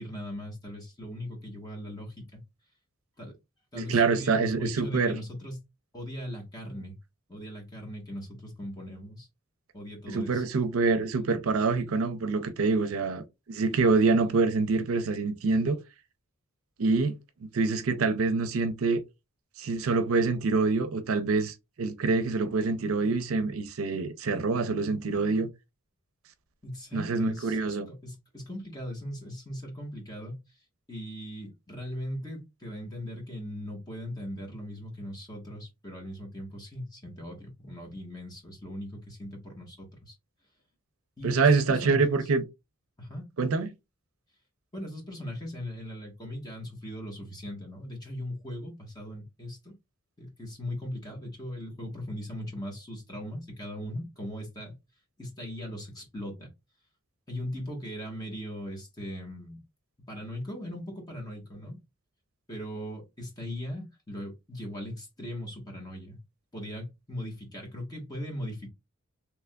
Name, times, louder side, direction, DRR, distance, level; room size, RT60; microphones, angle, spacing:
voice 1, 0.0-2.4 3.2-3.3 3.7-5.6 5.9-7.0 7.3-9.3 9.7-10.4 26.6-27.6 27.9-30.4 30.9-40.1 41.2-42.2 43.0-43.3 44.7-49.8 50.2-54.7 55.2-56.5 57.3-59.6 60.1-61.8 62.5-66.2 66.5-68.7, left 1 dB, 20° left, 1.2 m, -39 dB
voice 2, 3.7-5.2 10.1-13.2 13.5-15.8 16.8-17.1 17.5-19.0 19.6-25.5 26.9-27.9 41.2-42.4 43.4-43.7, right 4 dB, 70° right, 0.5 m, -26 dB
3.4 x 3.0 x 2.2 m
head